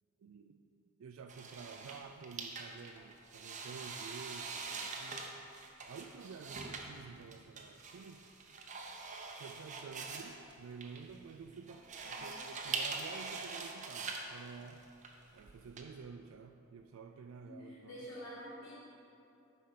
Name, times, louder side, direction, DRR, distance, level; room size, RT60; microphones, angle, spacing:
voice 1, 0.2-0.6 1.0-5.3 5.9-8.3 9.4-11.8 12.2-14.9 15.3-18.1, right 5 dB, 70° right, 5 dB, 0.3 m, -50 dB
sound 1, 1.3-15.8, right 4 dB, 35° right, 0.7 m, -44 dB
voice 2, 12.0-12.4 17.4-18.8, equal, 65° left, -8 dB, 1.6 m, -48 dB
8.7 x 5.0 x 5.8 m, 2.8 s
head